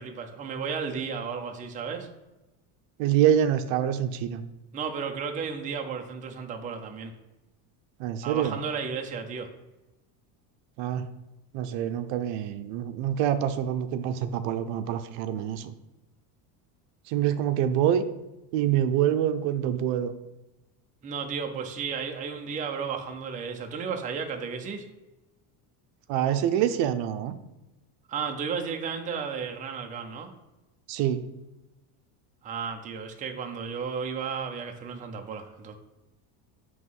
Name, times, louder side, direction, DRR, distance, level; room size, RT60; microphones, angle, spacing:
voice 1, 0.0-2.1 4.7-7.1 8.2-9.5 21.0-24.8 28.1-30.3 32.4-35.8, right 6 dB, 15° right, 3 dB, 0.5 m, -33 dB
voice 2, 3.0-4.4 8.0-8.6 10.8-11.0 11.5-15.7 17.1-18.0 18.5-20.1 26.1-27.4 30.9-31.2, right 10 dB, 60° right, 10 dB, 0.7 m, -26 dB
7.8 x 3.1 x 5.4 m, 1.0 s
cardioid pair, 150°, 49 cm